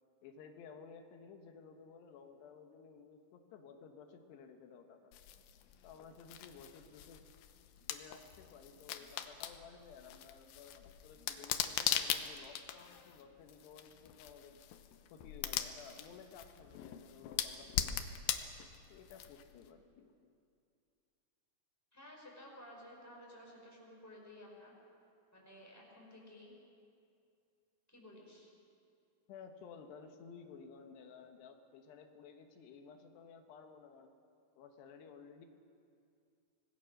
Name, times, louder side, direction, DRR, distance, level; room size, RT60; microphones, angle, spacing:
voice 1, 0.2-5.2 5.8-7.2 7.9-14.6 15.1-18.2 18.9-20.3 29.3-34.1 34.6-35.5, left 6 dB, 90° left, 5 dB, 3.4 m, -55 dB
sound 1, 5.1-19.7, left 10 dB, 70° left, 2.4 m, -41 dB
voice 2, 21.9-24.7 25.3-26.5 27.9-28.5, left 1 dB, 5° left, -3 dB, 5.1 m, -54 dB
26.0 x 19.5 x 6.5 m, 2.4 s
omnidirectional pair, 4.7 m